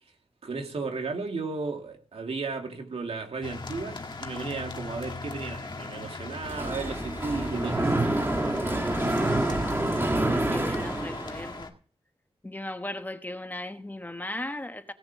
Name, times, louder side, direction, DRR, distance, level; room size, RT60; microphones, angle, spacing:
voice 1, 0.4-8.0, right 4 dB, 75° right, 2.4 m, -34 dB
sound 1, 3.4-11.7, left 3 dB, 45° left, 1.6 m, -39 dB
Mechanisms, 6.4-11.6, right 1 dB, 20° right, 1.8 m, -27 dB
voice 2, 10.0-11.7 12.4-14.9, left 1 dB, 15° left, 1.1 m, -37 dB
17.0 x 7.4 x 7.3 m
wide cardioid pair, 105°, 10 cm